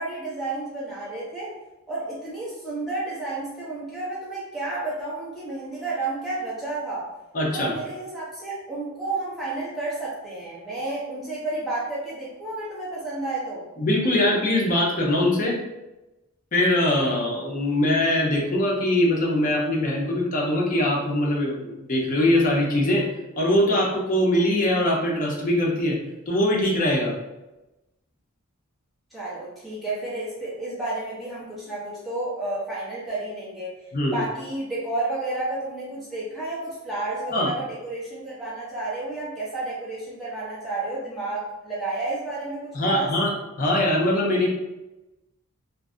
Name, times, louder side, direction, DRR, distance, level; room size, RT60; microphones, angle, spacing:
voice 1, 0.0-1.5 1.9-7.1 7.5-13.7 29.1-33.7 34.1-43.1, right 2 dB, ahead, -9 dB, 0.8 m, -31 dB
voice 2, 7.3-7.7 13.8-15.6 16.5-23.1 23.4-26.0 26.3-27.1 33.9-34.2 37.3-37.5 42.7-43.3 43.6-44.5, left 1 dB, 35° left, -2 dB, 0.5 m, -22 dB
2.6 x 2.5 x 2.3 m, 1.0 s
head